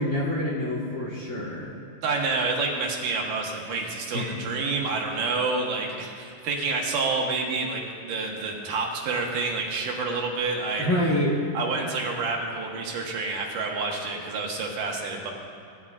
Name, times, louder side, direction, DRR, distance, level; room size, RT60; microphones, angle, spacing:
voice 1, 0.0-1.8 4.1-4.3 10.8-11.3, left 1 dB, 40° left, -5 dB, 1.1 m, -26 dB
voice 2, 2.0-10.9 11.5-15.3, right 3 dB, 75° right, 0 dB, 2.7 m, -28 dB
19.5 x 11.0 x 2.4 m, 2.6 s
omnidirectional pair, 3.8 m